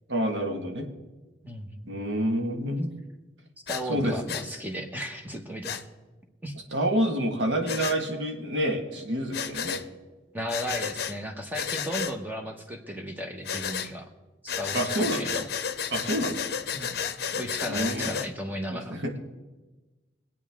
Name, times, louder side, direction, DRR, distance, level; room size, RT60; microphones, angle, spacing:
voice 1, 0.1-0.9 1.9-2.9 3.9-4.2 6.7-9.8 14.7-15.5 15.9-16.4 17.7-18.1 18.7-19.1, right 1 dB, 85° right, 3 dB, 1.7 m, -28 dB
voice 2, 1.4-1.9 3.7-5.8 6.4-6.5 10.3-14.1 14.4-15.5 16.7-17.0 17.3-19.2, equal, 10° right, 3 dB, 1.2 m, -35 dB
Breathing, 3.7-3.8 4.3-4.5 5.6-5.8 7.7-8.0 9.3-9.8 10.5-11.1 11.5-12.1 13.5-13.9 14.5-18.3, left 7 dB, 55° left, 0.7 m, -32 dB
23.5 x 8.6 x 3.6 m, 1.2 s
head